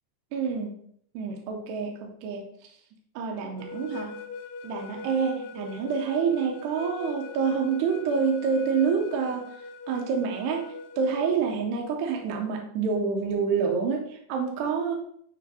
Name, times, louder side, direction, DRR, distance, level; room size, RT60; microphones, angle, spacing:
voice 1, 0.3-0.8 1.1-2.7 3.2-4.2 4.6-15.0, right 5 dB, 75° right, 1 dB, 2.7 m, -27 dB
sound 1, 3.6-11.4, left 4 dB, 80° left, 2.4 m, -42 dB
8.4 x 3.1 x 4.2 m, 0.66 s
omnidirectional pair, 5.1 m